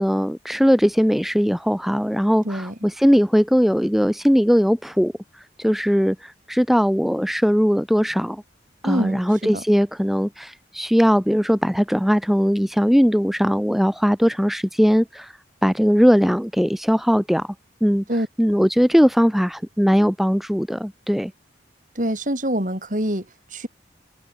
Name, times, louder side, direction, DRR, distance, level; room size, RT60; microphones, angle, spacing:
voice 1, 0.0-5.1 5.6-8.4 8.8-15.3 15.6-17.5 17.8-18.0 18.4-21.3, equal, ahead, 2.6 m, -19 dB
voice 2, 2.4-2.8 8.8-9.2 9.5-9.6 18.1-18.3 22.0-23.7, equal, 45° right, 7.0 m, -25 dB
head